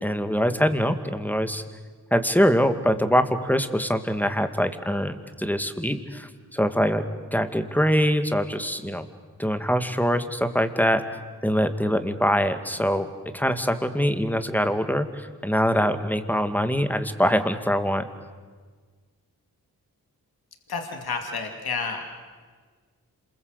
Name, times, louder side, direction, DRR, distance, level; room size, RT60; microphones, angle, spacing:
voice 1, 0.0-1.6 2.1-7.0 7.3-9.1 9.4-11.2 11.4-13.1 13.3-18.0, equal, 5° left, 9 dB, 2.2 m, -23 dB
voice 2, 20.7-22.0, left 4 dB, 80° left, 4 dB, 2.6 m, -30 dB
27.5 x 21.5 x 8.2 m, 1.5 s
cardioid pair, 45°, 37 cm